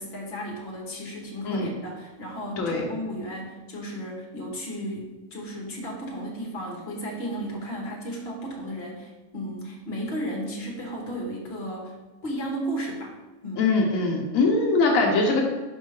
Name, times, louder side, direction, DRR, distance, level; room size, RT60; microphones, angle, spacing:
voice 1, 0.0-11.9 12.2-13.2 13.4-13.6, equal, 50° left, -2 dB, 1.6 m, -34 dB
voice 2, 13.6-15.4, left 3 dB, 90° left, 0 dB, 1.2 m, -22 dB
5.3 x 5.3 x 3.6 m, 1.2 s
omnidirectional pair, 1.4 m